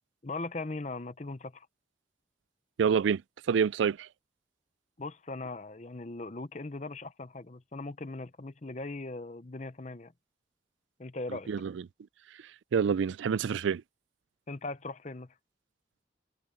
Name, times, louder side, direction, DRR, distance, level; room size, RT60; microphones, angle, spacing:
voice 1, 0.2-1.7 5.0-10.1 11.0-11.5 14.5-15.3, left 2 dB, 40° left, 0.8 m, -39 dB
voice 2, 2.8-3.2 3.5-4.1 11.5-11.7 12.7-13.8, right 6 dB, 85° right, 0.4 m, -27 dB
head